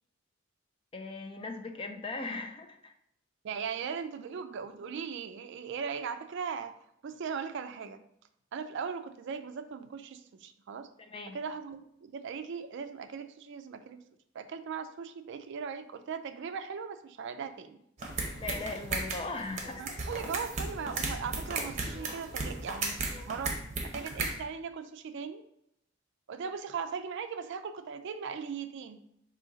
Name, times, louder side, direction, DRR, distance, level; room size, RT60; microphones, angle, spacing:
voice 1, 0.9-2.9 11.0-11.4 18.4-20.0, left 3 dB, 25° left, 6 dB, 0.4 m, -39 dB
voice 2, 3.4-6.8 7.0-8.0 8.5-10.9 11.3-14.0 14.3-17.8 19.8-25.4 26.3-29.0, right 6 dB, 60° right, 10 dB, 0.4 m, -39 dB
sound 1, 18.0-24.3, right 3 dB, 35° right, 0.9 m, -35 dB
4.9 x 2.8 x 3.9 m, 0.76 s
head